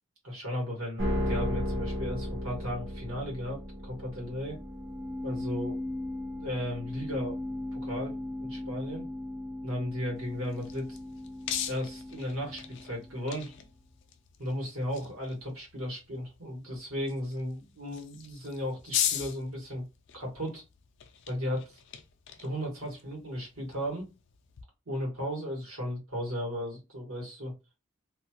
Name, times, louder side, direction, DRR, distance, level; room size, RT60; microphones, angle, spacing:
voice 1, 0.2-4.6 5.2-5.8 6.3-7.4 7.7-8.2 8.4-9.1 9.6-11.0 11.7-13.5 14.4-19.8 20.1-20.6 21.3-21.6 22.4-24.1 24.9-27.5, equal, 75° right, -2 dB, 1.4 m, -35 dB
sound 1, 1.0-13.3, left 1 dB, 55° right, 0.9 m, -36 dB
Opening a Soda Bottle, 10.2-24.6, left 10 dB, 55° left, 0.4 m, -40 dB
2.7 x 2.3 x 2.8 m, 0.26 s
head